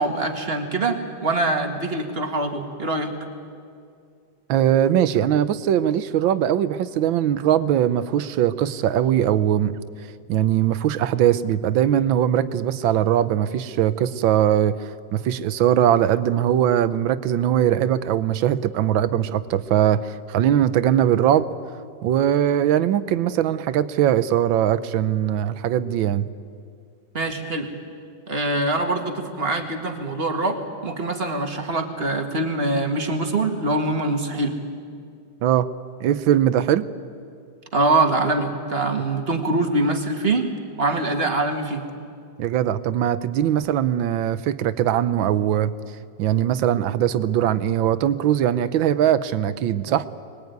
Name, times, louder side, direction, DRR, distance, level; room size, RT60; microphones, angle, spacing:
voice 1, 0.0-3.1 27.1-27.7 28.3-34.6 37.7-40.5 40.8-41.8, right 2 dB, 30° right, 4 dB, 2.1 m, -24 dB
voice 2, 4.5-9.8 10.3-21.5 22.0-26.3 35.4-35.7 36.0-36.9 42.4-45.7 46.2-50.1, right 10 dB, 80° right, 14 dB, 1.5 m, -21 dB
24.0 x 21.0 x 9.4 m, 2.3 s
omnidirectional pair, 2.1 m